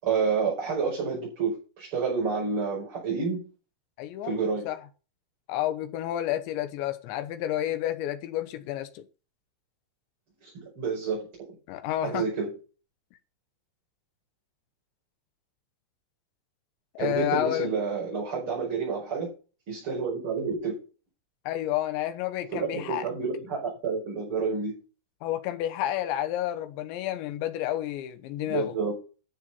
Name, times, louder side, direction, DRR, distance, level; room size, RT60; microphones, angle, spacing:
voice 1, 0.0-3.4 4.2-4.7 10.4-11.3 12.0-12.5 17.0-19.3 19.7-20.8 22.5-24.7 28.5-28.9, right 5 dB, 30° right, 5.8 m, -29 dB
voice 2, 4.0-4.8 5.5-9.0 11.7-12.3 17.0-17.7 21.5-23.1 25.2-28.7, left 12 dB, 90° left, 3.2 m, -30 dB
13.0 x 6.7 x 5.5 m
omnidirectional pair, 5.1 m